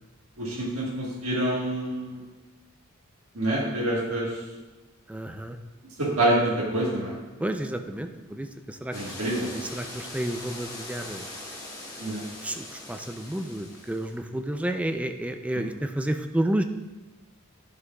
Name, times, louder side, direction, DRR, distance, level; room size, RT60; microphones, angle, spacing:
voice 1, 0.4-2.2 3.3-4.3 6.0-7.2 8.9-9.6 12.0-12.2, right 1 dB, 70° right, -5 dB, 1.5 m, -26 dB
voice 2, 5.1-5.6 7.4-9.1 9.5-11.3 11.9-16.6, right 1 dB, 5° right, 6 dB, 0.3 m, -31 dB
sound 1, 8.9-14.2, left 1 dB, 15° left, 1.6 m, -41 dB
11.0 x 6.0 x 2.3 m, 1.1 s
head